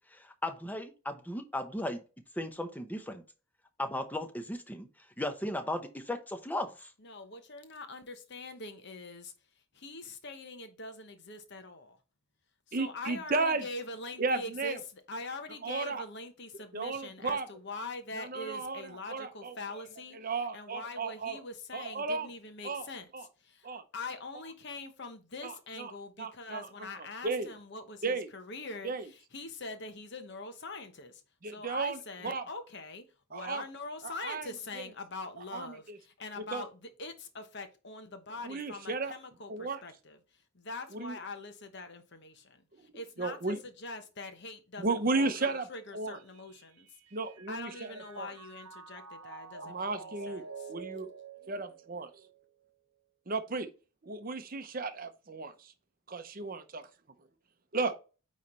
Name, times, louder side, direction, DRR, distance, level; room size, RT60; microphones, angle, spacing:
voice 1, 0.1-2.0 2.4-3.2 3.8-4.9 5.2-6.9, left 1 dB, 5° left, 0.8 m, -36 dB
voice 2, 7.0-9.3 9.7-12.0 12.7-20.2 20.5-33.0 33.3-40.2 40.5-46.9 47.5-50.4, left 3 dB, 50° left, 1.0 m, -43 dB
voice 3, 12.7-13.6 14.2-14.8 15.6-16.0 16.7-17.5 18.2-18.8 19.1-19.9 20.1-21.4 21.7-22.3 22.6-22.9 23.1-23.3 23.6-23.8 25.4-25.9 26.2-26.7 27.2-27.5 28.0-28.3 28.8-29.0 31.4-32.4 33.3-33.6 34.0-34.5 34.8-34.9 35.5-36.0 36.5-36.6 38.4-39.1 39.5-39.8 40.9-41.1 43.2-43.6 44.8-45.6 45.9-46.2 47.1-48.3 49.6-50.4 50.7-51.1 51.5-52.1 53.3-53.7 54.0-55.7 56.1-56.8 57.7-57.9, right 3 dB, 40° right, 0.7 m, -34 dB
Mallet percussion, 46.1-52.5, right 4 dB, 90° right, 0.8 m, -48 dB
9.1 x 3.2 x 4.3 m
head